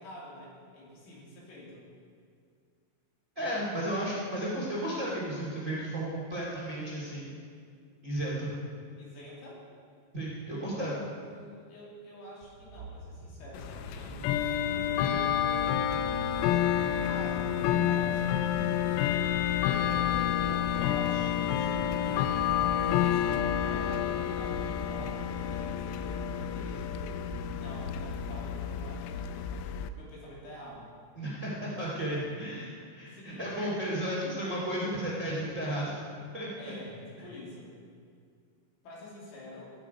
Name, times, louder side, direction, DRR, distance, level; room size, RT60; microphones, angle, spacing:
voice 1, 0.0-1.9 9.0-9.6 10.6-14.2 17.0-18.8 19.7-27.3 27.6-30.9 31.8-32.3 33.1-33.5 36.6-37.7 38.8-39.7, left 1 dB, 70° left, -5 dB, 5.4 m, -47 dB
voice 2, 3.3-7.3 8.0-8.5 10.1-10.9 15.0-15.2 31.1-36.0 36.3-36.5, right 1 dB, 50° right, -4 dB, 0.8 m, -33 dB
sound 1, 12.4-29.3, right 3 dB, 80° right, 2.0 m, -47 dB
Bell / Tick-tock, 13.5-29.9, left 10 dB, 85° left, 3.3 m, -29 dB
15.0 x 11.5 x 5.1 m, 2.2 s
omnidirectional pair, 5.9 m